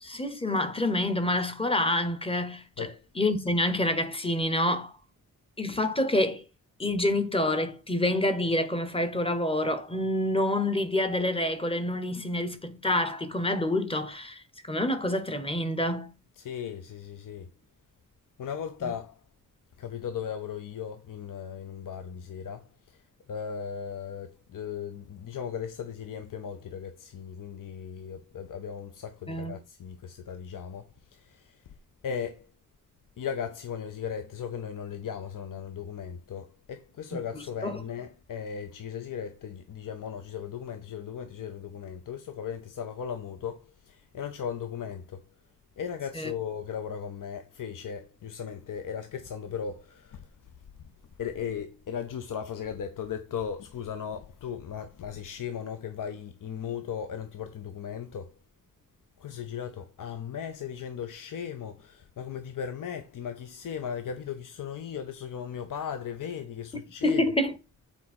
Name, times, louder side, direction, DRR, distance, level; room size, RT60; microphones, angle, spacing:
voice 1, 0.0-4.9 5.6-6.4 6.8-16.1 29.3-29.6 37.1-37.2 37.6-37.8 46.1-46.3 67.0-67.5, left 1 dB, 15° left, 0.8 m, -27 dB
voice 2, 16.4-17.5 18.4-19.2 19.8-31.7 32.0-32.5 33.2-45.2 45.8-50.5 50.8-50.9 51.2-58.4 59.2-67.2, left 7 dB, 75° left, 0.7 m, -37 dB
7.1 x 4.2 x 4.2 m
wide cardioid pair, 170°, 32 cm